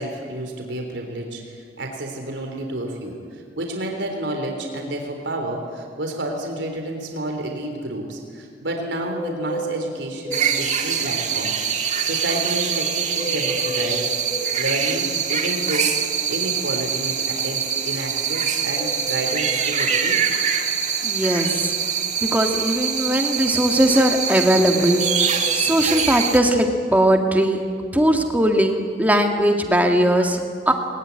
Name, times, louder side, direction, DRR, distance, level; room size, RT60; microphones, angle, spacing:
voice 1, 0.0-11.6 12.0-14.1 14.6-15.9 16.3-20.2, right 1 dB, 80° right, 3 dB, 3.6 m, -30 dB
sound 1, 9.1-10.5 13.1-14.5 18.7-20.1 24.7-26.1, equal, 10° left, 2.7 m, -32 dB
sound 2, 10.3-26.4, right 7 dB, 40° right, 1.8 m, -24 dB
voice 2, 21.0-21.7 22.2-27.6 27.9-30.7, right 1 dB, 10° right, 3 dB, 2.0 m, -19 dB
21.0 x 21.0 x 9.7 m, 2.1 s
head